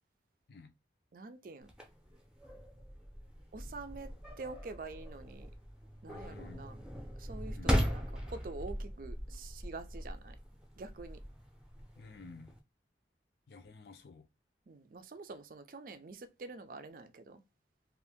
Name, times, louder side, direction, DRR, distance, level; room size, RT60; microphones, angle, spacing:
voice 1, 1.1-1.7 3.5-5.5 6.0-6.8 7.2-10.4 10.8-11.2 14.7-17.4, right 3 dB, 50° right, 0.4 m, -47 dB
sound 1, 1.6-12.6, equal, 5° right, 0.6 m, -39 dB
voice 2, 6.1-6.6 7.5-7.8 12.0-12.6 13.5-14.3, left 3 dB, 65° left, 0.5 m, -52 dB
2.7 x 2.5 x 3.5 m
head